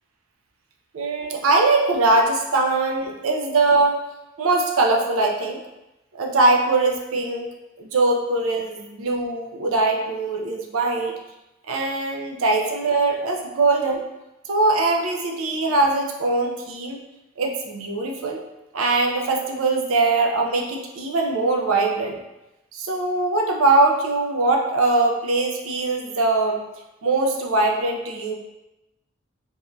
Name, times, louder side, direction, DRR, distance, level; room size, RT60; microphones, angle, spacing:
voice 1, 0.9-4.0 4.4-5.6 6.1-7.5 7.8-11.1 11.7-14.0 14.5-17.0 17.4-18.4 18.7-22.2 22.7-26.6 27.0-28.3, right 3 dB, 80° right, 2 dB, 0.5 m, -21 dB
3.4 x 2.2 x 2.5 m, 0.97 s
head